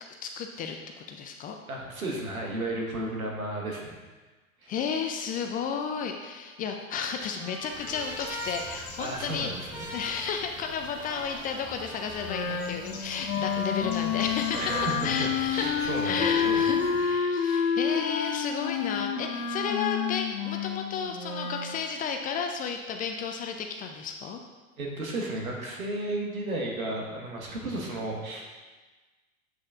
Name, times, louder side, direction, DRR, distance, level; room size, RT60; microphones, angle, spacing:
voice 1, 0.2-1.5 4.7-14.7 15.0-24.4, left 6 dB, 25° left, 4 dB, 0.3 m, -33 dB
voice 2, 1.7-4.0 4.6-4.7 9.0-9.9 14.5-16.6 17.2-17.7 24.8-28.4, right 1 dB, 85° right, -1 dB, 1.4 m, -33 dB
Trumpet, 6.3-12.6, equal, 10° right, 1.8 m, -43 dB
Bird, 7.5-17.2, left 3 dB, 60° left, 1.6 m, -46 dB
Wind instrument woodwind instrument, 12.3-21.7, left 7 dB, 85° left, 0.7 m, -29 dB
7.9 x 6.2 x 2.4 m, 1.3 s
hypercardioid pair, 85°, 41 cm